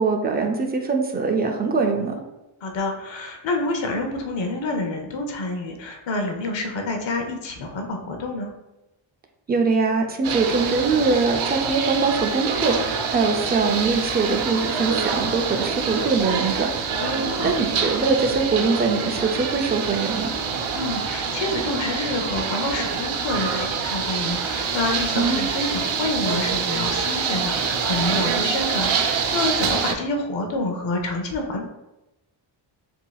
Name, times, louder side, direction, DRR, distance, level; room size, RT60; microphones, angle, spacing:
voice 1, 0.0-2.1 9.5-16.7 17.4-20.3 25.2-25.4, right 4 dB, 20° right, 3 dB, 0.4 m, -22 dB
voice 2, 2.6-8.5 17.0-17.5 20.7-31.7, left 2 dB, 70° left, 3 dB, 0.8 m, -28 dB
sound 1, 10.2-29.9, right 6 dB, 80° right, 0.7 m, -26 dB
7.0 x 2.8 x 2.3 m, 0.97 s
wide cardioid pair, 145°, 47 cm